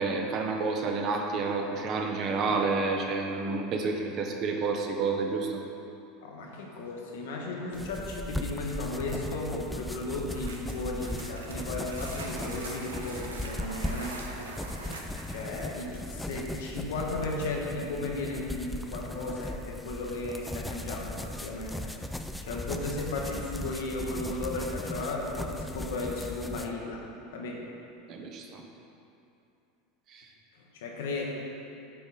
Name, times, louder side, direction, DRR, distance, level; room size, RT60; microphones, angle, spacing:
voice 1, 0.0-5.6 28.1-28.6 30.1-30.3, right 4 dB, 45° right, 2 dB, 0.7 m, -29 dB
voice 2, 6.2-14.1 15.3-21.9 22.4-27.0 27.3-27.7 30.6-31.3, left 2 dB, 75° left, -1 dB, 0.9 m, -35 dB
sound 1, 7.7-26.7, left 1 dB, 5° left, 0.3 m, -38 dB
sound 2, 10.2-15.8, right 2 dB, 90° right, 0.6 m, -43 dB
6.7 x 4.0 x 3.9 m, 2.7 s
hypercardioid pair, 85°, 0 cm